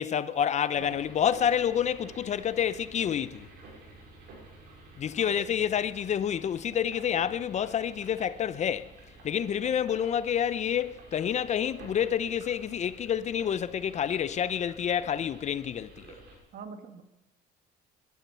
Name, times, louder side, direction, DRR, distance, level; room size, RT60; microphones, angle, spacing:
voice 1, 0.0-3.5 5.0-8.9 9.2-16.1, left 9 dB, 45° left, 0.6 m, -28 dB
sound 1, 0.7-16.4, right 2 dB, 80° right, 6.4 m, -50 dB
voice 2, 16.5-17.0, right 6 dB, 60° right, 1.9 m, -44 dB
21.0 x 12.0 x 5.6 m
cardioid pair, 110°, 17 cm